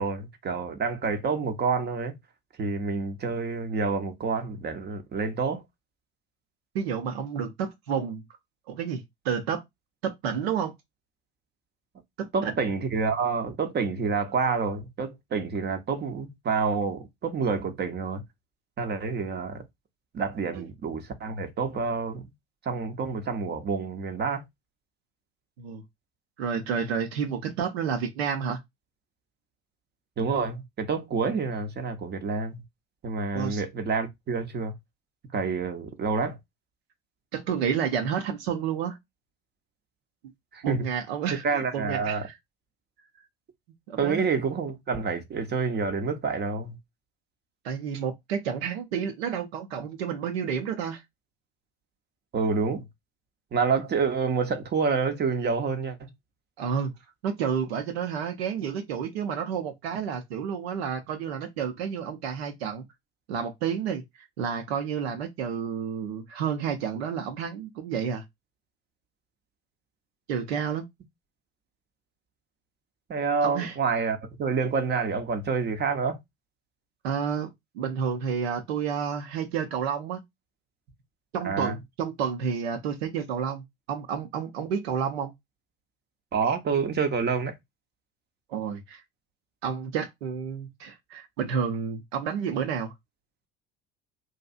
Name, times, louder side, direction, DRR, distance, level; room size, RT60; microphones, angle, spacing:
voice 1, 0.0-2.2 2.6-5.6 12.3-18.2 18.8-19.6 20.1-22.3 22.7-24.4 30.2-32.6 33.0-34.7 35.3-36.4 40.5-40.9 41.4-42.2 44.0-46.8 52.3-52.8 53.5-56.0 73.1-76.2 81.4-81.7 86.3-87.5, right 5 dB, 35° right, 0.6 m, -28 dB
voice 2, 6.7-8.2 8.7-9.6 10.0-10.7 12.2-12.6 20.5-20.7 25.6-25.8 26.4-28.6 33.3-33.6 37.3-39.0 40.6-42.3 43.9-44.3 47.6-51.0 56.6-56.9 57.2-62.8 63.3-64.0 64.4-68.2 70.3-70.9 73.4-73.8 77.0-80.2 81.3-85.3 88.5-89.0 89.6-92.9, right 7 dB, 75° right, 0.6 m, -30 dB
2.7 x 2.4 x 2.4 m
hypercardioid pair, 65°, 31 cm